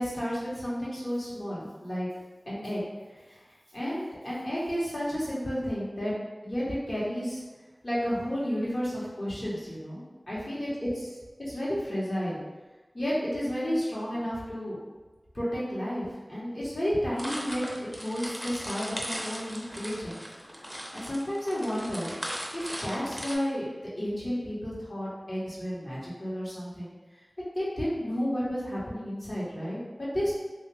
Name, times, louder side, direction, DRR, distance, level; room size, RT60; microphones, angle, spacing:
voice 1, 0.0-2.1 2.5-2.8 3.1-3.4 3.7-6.1 6.4-7.4 7.8-10.9 11.5-12.4 12.9-14.8 15.3-20.2 20.9-22.1 22.5-26.9 27.5-30.3, equal, 50° left, -8 dB, 1.4 m, -32 dB
sound 1, 17.2-23.4, equal, 5° right, 0.6 m, -38 dB
3.4 x 2.6 x 3.4 m, 1.2 s
wide cardioid pair, 55°, 0 cm